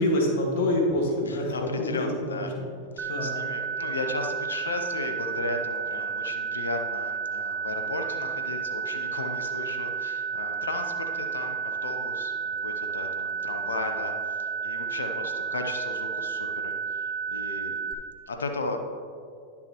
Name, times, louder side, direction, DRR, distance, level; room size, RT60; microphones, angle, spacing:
voice 1, 0.0-2.7 3.1-3.4, left 1 dB, 65° left, 0 dB, 1.8 m, -26 dB
voice 2, 1.3-2.5 3.0-14.1 14.4-17.8 18.3-18.8, left 3 dB, 85° left, 5 dB, 0.8 m, -35 dB
sound 1, 3.0-17.9, right 5 dB, 25° right, 0.9 m, -32 dB
10.5 x 7.2 x 3.0 m, 2.3 s
hypercardioid pair, 100°, 0 cm